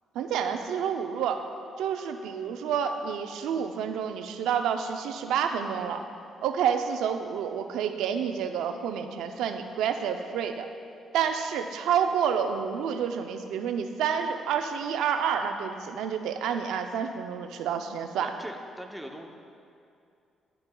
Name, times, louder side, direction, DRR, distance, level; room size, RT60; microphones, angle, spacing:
voice 1, 0.1-1.4 1.8-6.0 6.4-10.7 11.1-18.3, right 7 dB, 90° right, 6 dB, 0.4 m, -29 dB
voice 2, 18.2-19.3, equal, 5° right, 2 dB, 0.7 m, -41 dB
11.5 x 6.7 x 2.2 m, 2.5 s
cardioid pair, 90°, 0 cm